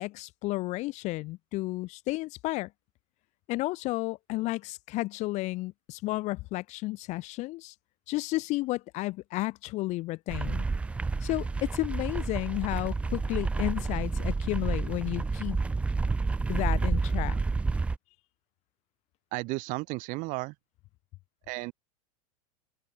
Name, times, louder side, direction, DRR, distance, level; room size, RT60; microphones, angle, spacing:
voice 1, 0.0-2.7 3.5-7.7 8.1-10.6 11.2-15.6 16.5-17.4, left 20 dB, 35° left, 3.4 m, -32 dB
sound 1, 10.3-18.0, right 3 dB, 5° right, 0.5 m, -29 dB
voice 2, 19.3-20.6 21.5-21.7, right 25 dB, 40° right, 7.0 m, -33 dB
supercardioid pair, 165°, 20 cm